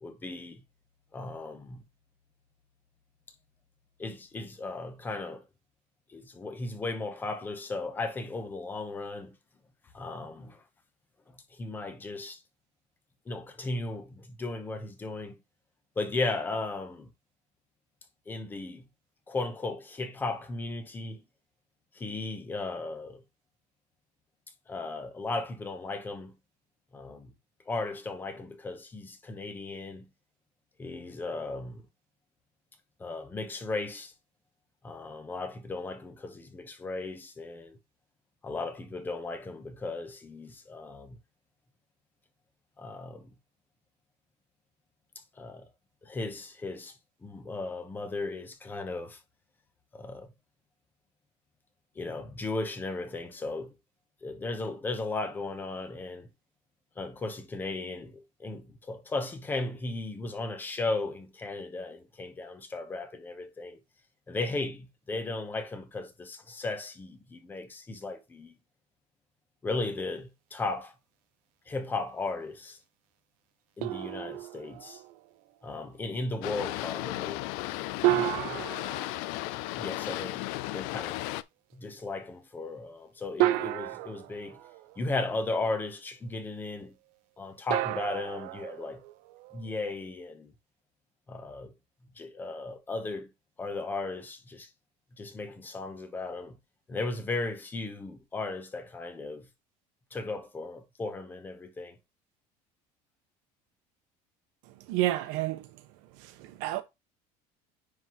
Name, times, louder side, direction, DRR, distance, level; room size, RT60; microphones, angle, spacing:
voice 1, 0.0-0.6 1.1-1.8 4.0-5.5 6.1-9.4 9.9-10.6 11.3-12.4 13.3-15.4 16.0-17.1 18.3-18.9 19.3-21.3 21.9-23.2 24.7-26.3 26.9-27.3 27.7-30.1 30.8-31.9 33.0-34.1 34.8-37.8 38.4-41.2 42.8-43.3 45.1-45.7 46.0-49.2 49.9-50.3 51.9-53.7 54.2-56.3 57.0-63.8 64.3-68.5 69.6-70.9 71.7-72.8 73.8-75.0 75.6-77.4 78.0-78.6 79.8-80.4 80.7-81.2 81.7-84.6 85.0-87.0 87.4-89.0 89.5-90.5 91.3-91.7 92.1-93.3 93.6-94.7 95.1-96.6 96.9-99.5 100.1-102.0, left 3 dB, 15° left, 0.9 m, -36 dB
sound 1, 73.8-75.3 78.0-80.1 81.7-81.8 83.4-85.3 87.7-89.7, right 16 dB, 65° right, 0.6 m, -32 dB
Boat Water vehicle, 76.4-81.4, left 17 dB, 75° left, 0.5 m, -35 dB
voice 2, 104.9-105.7 106.2-106.8, right 15 dB, 80° right, 1.2 m, -30 dB
9.8 x 3.9 x 3.1 m
cardioid pair, 175°, 15 cm